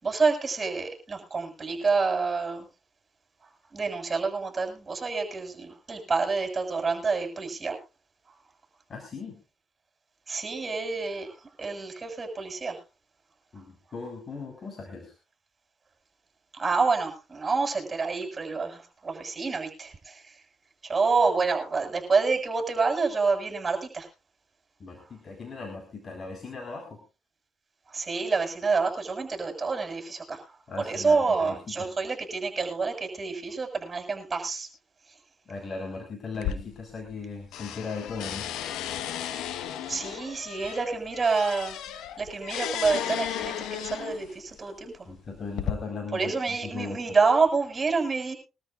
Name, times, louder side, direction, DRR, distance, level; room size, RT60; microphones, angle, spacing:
voice 1, 0.0-2.7 3.7-7.8 10.3-12.8 16.5-20.4 20.8-24.1 25.0-25.1 27.9-34.7 39.9-41.8 42.2-45.1 46.1-48.3, right 4 dB, 30° right, 3 dB, 7.2 m, -28 dB
voice 2, 8.9-9.4 13.5-15.1 24.8-27.0 30.7-31.9 35.5-38.8 45.1-47.0, left 4 dB, 45° left, 4 dB, 4.4 m, -38 dB
sound 1, 36.3-37.3 37.5-44.4 45.1-45.7, left 10 dB, 85° left, 1.3 m, -34 dB
23.0 x 13.5 x 2.6 m, 0.31 s
cardioid pair, 90°, 0 cm